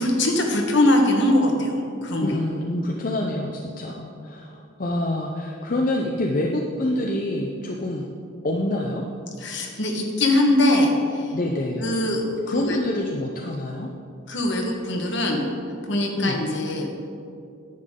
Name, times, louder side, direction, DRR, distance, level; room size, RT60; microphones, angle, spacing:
voice 1, 0.0-2.3 9.4-11.3 11.8-12.8 14.3-15.4 15.9-16.9, left 1 dB, 55° left, 1 dB, 1.3 m, -22 dB
voice 2, 2.2-8.1 8.4-9.0 11.3-11.9 12.5-13.9 16.2-16.4, left 1 dB, 40° left, 0 dB, 0.6 m, -26 dB
10.5 x 8.3 x 3.7 m, 2.4 s
head